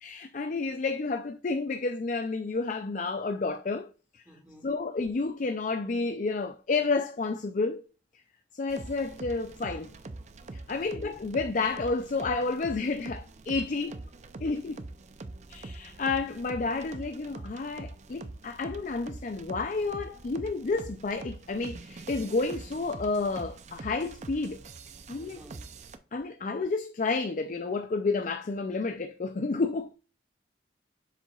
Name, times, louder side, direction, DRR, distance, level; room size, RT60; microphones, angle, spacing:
voice 1, 0.0-4.2 4.6-7.8 8.5-9.9 10.7-14.0 14.4-14.8 15.5-24.6 25.1-25.4 26.1-29.9, left 3 dB, 45° left, 0.4 m, -30 dB
voice 2, 4.3-4.7 10.8-11.1 13.9-14.0 25.2-25.6, equal, 10° right, 2.1 m, -53 dB
sound 1, 8.7-26.0, right 2 dB, 40° right, 0.5 m, -44 dB
7.3 x 6.8 x 2.4 m
head